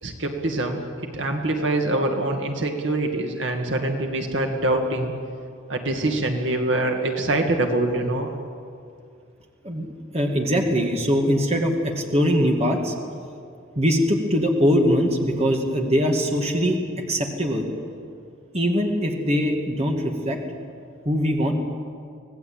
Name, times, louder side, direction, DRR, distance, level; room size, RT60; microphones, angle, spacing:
voice 1, 0.0-5.1 5.7-8.3 10.3-10.4, right 2 dB, 65° right, 3 dB, 2.2 m, -24 dB
voice 2, 10.1-12.9 13.8-16.8 17.1-17.6 18.5-20.4 21.1-21.5, equal, 30° right, 1 dB, 2.4 m, -22 dB
25.5 x 18.0 x 8.9 m, 2.3 s
head